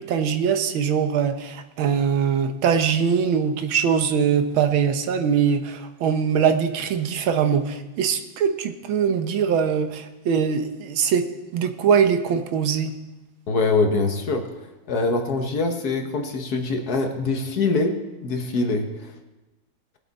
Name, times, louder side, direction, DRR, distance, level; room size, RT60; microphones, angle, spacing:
voice 1, 0.0-11.2 11.5-12.9, right 7 dB, 85° right, 8 dB, 1.7 m, -22 dB
voice 2, 13.5-14.4 14.9-17.9 18.2-18.9, left 3 dB, 55° left, 4 dB, 1.5 m, -23 dB
20.0 x 8.0 x 4.1 m, 1.1 s
omnidirectional pair, 2.2 m